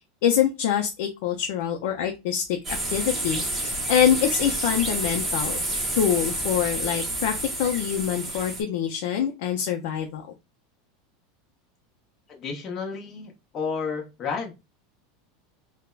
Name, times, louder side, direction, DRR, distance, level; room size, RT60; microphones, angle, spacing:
voice 1, 0.2-2.6 2.9-5.6 5.9-7.3 7.6-10.2, left 9 dB, 65° left, 0.4 m, -25 dB
sound 1, 2.6-8.6, right 1 dB, 15° right, 0.7 m, -29 dB
voice 2, 12.3-14.5, left 5 dB, 25° left, 0.7 m, -31 dB
3.2 x 2.0 x 2.3 m
supercardioid pair, 165°, 0 cm